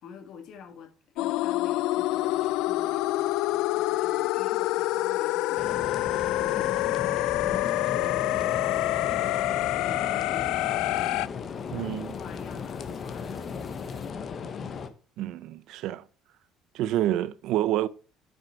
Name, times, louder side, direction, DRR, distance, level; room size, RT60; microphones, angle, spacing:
voice 1, 0.0-10.9 11.3-14.4, left 7 dB, 55° left, 1.8 m, -47 dB
sound 1, 1.2-11.3, left 17 dB, 75° left, 0.3 m, -27 dB
sound 2, 1.3-14.1, left 2 dB, 10° left, 1.2 m, -56 dB
sound 3, 5.6-14.9, left 6 dB, 30° left, 0.9 m, -36 dB
voice 2, 11.7-12.1 15.2-16.0 16.7-17.9, right 13 dB, 65° right, 0.5 m, -28 dB
8.9 x 6.2 x 4.5 m
cardioid pair, 170°, 0 cm